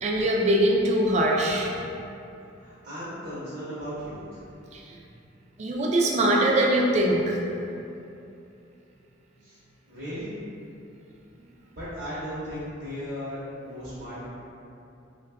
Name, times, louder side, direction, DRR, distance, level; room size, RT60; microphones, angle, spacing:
voice 1, 0.0-1.7 4.7-4.8 5.6-7.4, right 1 dB, 35° right, -1 dB, 0.3 m, -22 dB
voice 2, 2.6-4.4 9.4-9.6 9.9-10.3 11.7-14.3, equal, 55° right, -11 dB, 0.8 m, -36 dB
2.9 x 2.2 x 3.5 m, 2.8 s
head